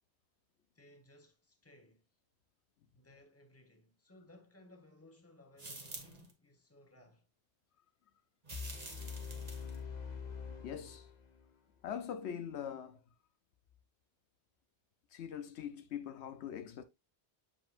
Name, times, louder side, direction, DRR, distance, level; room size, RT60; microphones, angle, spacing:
voice 1, 0.7-2.0 2.9-7.3, left 1 dB, 15° left, 1.1 m, -61 dB
sound 1, 5.6-6.3 8.4-9.8, right 2 dB, 35° right, 1.4 m, -48 dB
sound 2, 8.5-11.6, left 6 dB, 45° left, 0.8 m, -45 dB
voice 2, 10.6-11.1 11.8-13.0 15.1-16.8, left 8 dB, 75° left, 0.9 m, -42 dB
7.4 x 5.1 x 2.5 m
omnidirectional pair, 1.1 m